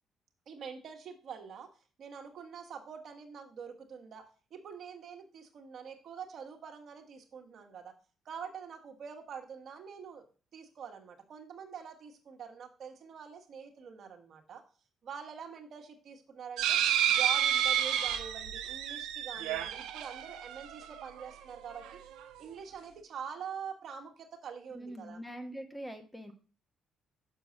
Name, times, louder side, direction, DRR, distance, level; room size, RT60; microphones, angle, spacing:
voice 1, 0.5-1.7 2.0-7.9 8.2-10.2 10.5-14.6 15.0-16.8 17.1-22.0 22.4-25.2, right 7 dB, 65° right, 3 dB, 1.6 m, -45 dB
sound 1, 16.6-21.2 21.8-21.9 22.2-22.3, right 10 dB, 85° right, 0.7 m, -30 dB
voice 2, 24.7-26.3, equal, 5° left, 6 dB, 1.4 m, -43 dB
7.0 x 4.6 x 6.4 m, 0.37 s
supercardioid pair, 60°, 0 cm